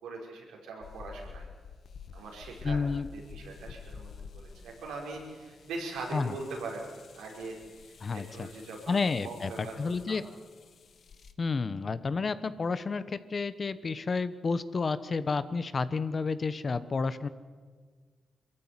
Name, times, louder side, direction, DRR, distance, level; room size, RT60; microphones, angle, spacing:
voice 1, 0.0-1.5 2.1-6.9 7.1-9.8 10.1-10.2, right 3 dB, 90° right, -1 dB, 5.4 m, -41 dB
sound 1, 0.8-11.3, left 6 dB, 65° left, 1.4 m, -49 dB
voice 2, 2.6-3.1 6.1-6.3 8.0-8.5 8.9-9.5 9.8-10.2 11.4-17.3, left 4 dB, 45° left, 14 dB, 1.1 m, -30 dB
22.5 x 14.5 x 9.9 m, 1.5 s
cardioid pair, 65°, 0 cm